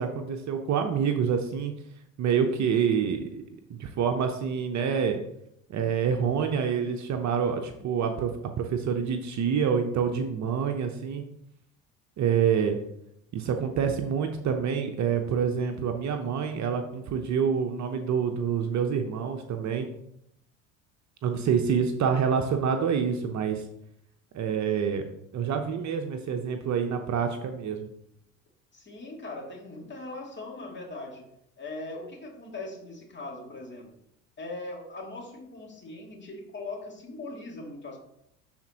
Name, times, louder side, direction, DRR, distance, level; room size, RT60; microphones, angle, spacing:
voice 1, 0.0-1.7 2.2-3.3 3.7-5.2 5.7-8.3 8.6-11.2 12.2-12.8 13.3-19.9 21.2-23.6 24.3-25.0 25.3-27.9, right 7 dB, 40° right, 5 dB, 0.9 m, -27 dB
voice 2, 21.3-21.7 28.7-31.3 31.6-33.9 34.4-38.0, left 2 dB, 25° left, 0 dB, 2.4 m, -40 dB
12.0 x 4.3 x 2.9 m, 0.78 s
hypercardioid pair, 75°, 42 cm